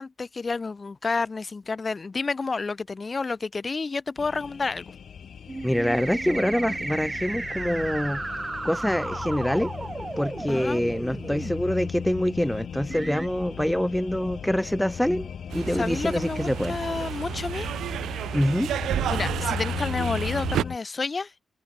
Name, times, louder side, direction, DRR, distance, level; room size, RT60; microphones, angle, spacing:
voice 1, 0.0-4.9 10.5-10.8 15.8-17.7 19.1-21.3, left 4 dB, 40° left, 2.0 m, -30 dB
sound 1, 4.2-20.8, left 7 dB, 65° left, 5.9 m, -37 dB
sound 2, 5.5-11.5 12.3-12.4 12.9-13.3, right 2 dB, 25° right, 2.9 m, -34 dB
voice 2, 5.6-8.2 8.6-9.7 10.2-16.7 17.1-17.2 18.3-18.7, equal, 5° left, 0.9 m, -25 dB
sound 3, 15.5-20.6, right 11 dB, 80° right, 0.8 m, -31 dB
open air
supercardioid pair, 60°, 0 cm